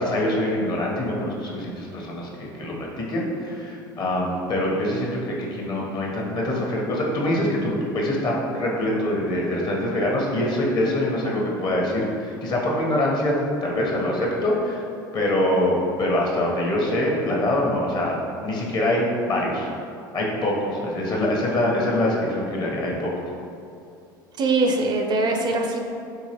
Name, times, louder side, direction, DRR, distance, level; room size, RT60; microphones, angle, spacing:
voice 1, 0.0-13.3 13.6-14.8 15.1-18.2 18.4-19.7 20.1-23.1, left 1 dB, 40° left, -2 dB, 0.9 m, -24 dB
voice 2, 24.4-25.8, right 3 dB, 40° right, 2 dB, 0.4 m, -22 dB
3.8 x 2.8 x 2.9 m, 2.5 s
hypercardioid pair, 75°, 11 cm